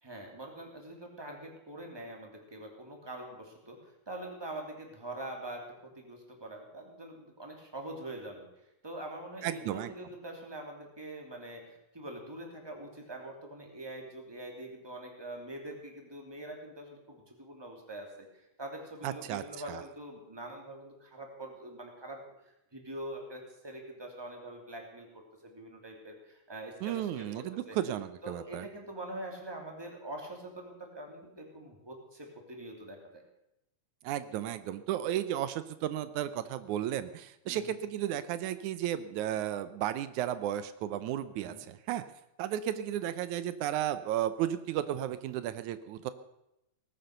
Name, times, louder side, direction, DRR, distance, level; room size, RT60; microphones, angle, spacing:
voice 1, 0.0-8.5 8.8-18.3 18.6-22.2 22.7-27.8 28.2-33.2 37.5-37.7 41.4-41.6, right 1 dB, 10° right, 1 dB, 2.8 m, -44 dB
voice 2, 9.4-9.9 19.0-19.8 26.8-28.7 34.0-42.0 42.4-46.1, right 11 dB, 85° right, 13 dB, 2.2 m, -34 dB
18.5 x 10.5 x 6.6 m, 0.86 s
omnidirectional pair, 3.4 m